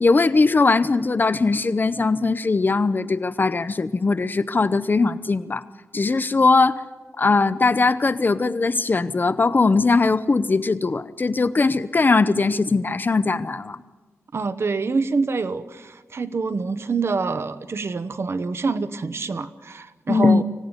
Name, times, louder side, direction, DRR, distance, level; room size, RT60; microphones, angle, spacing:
voice 1, 0.0-5.6 5.9-6.8 7.2-13.8 20.1-20.4, left 3 dB, 40° left, 15 dB, 0.7 m, -20 dB
voice 2, 14.3-20.4, right 4 dB, 55° right, 13 dB, 1.0 m, -26 dB
25.0 x 17.0 x 9.6 m, 1.3 s
wide cardioid pair, 110°, 5 cm